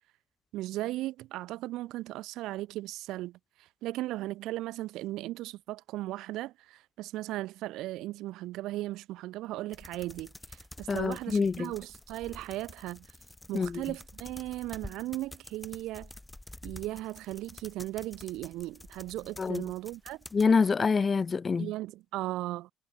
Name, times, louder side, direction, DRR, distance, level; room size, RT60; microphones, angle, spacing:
voice 1, 0.5-13.2 13.5-16.1 16.6-20.2 21.6-22.7, right 16 dB, 65° right, 0.3 m, -37 dB
sound 1, 9.7-20.5, left 1 dB, 10° left, 3.2 m, -49 dB
voice 2, 10.9-11.7 13.5-13.8 19.4-19.6 20.3-21.7, left 5 dB, 30° left, 0.4 m, -26 dB
hypercardioid pair, 55°, 0 cm